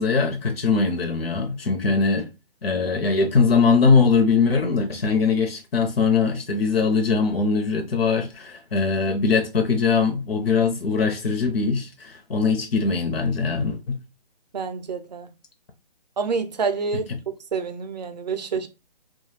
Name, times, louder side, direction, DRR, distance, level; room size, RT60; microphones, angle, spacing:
voice 1, 0.0-2.3 2.6-14.0 16.9-17.2, left 4 dB, 85° left, 0.7 m, -21 dB
voice 2, 14.5-15.3 16.2-17.1 17.5-18.7, right 5 dB, 50° right, 0.4 m, -27 dB
2.3 x 2.2 x 3.1 m
hypercardioid pair, 160°, 29 cm